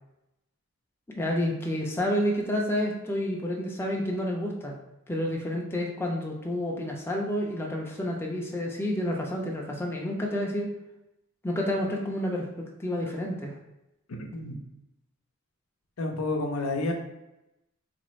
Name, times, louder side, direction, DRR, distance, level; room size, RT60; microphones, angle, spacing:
voice 1, 1.1-4.7 5.1-10.7 11.4-12.4 12.8-13.5, left 1 dB, 10° left, -1 dB, 0.4 m, -29 dB
voice 2, 14.2-14.6 16.0-16.9, left 2 dB, 85° left, 3 dB, 0.6 m, -30 dB
4.0 x 2.5 x 3.1 m, 0.92 s
head